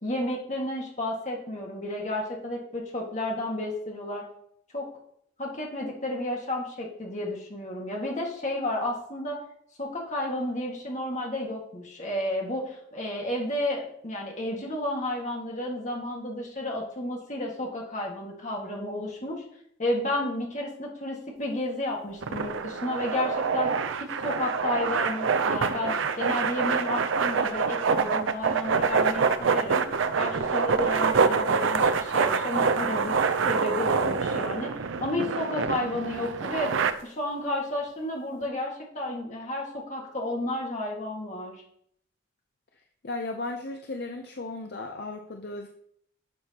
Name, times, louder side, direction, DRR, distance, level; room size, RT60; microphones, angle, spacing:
voice 1, 0.0-4.2 4.7-4.9 5.4-9.4 9.8-19.4 19.8-29.8 30.2-33.2 33.5-36.7 37.0-41.6, left 1 dB, 35° left, -1 dB, 1.8 m, -32 dB
sound 1, 22.2-36.9, right 5 dB, 75° right, 0.5 m, -26 dB
voice 2, 43.0-45.7, left 2 dB, 55° left, 4 dB, 0.6 m, -35 dB
11.5 x 6.3 x 2.9 m, 0.70 s
head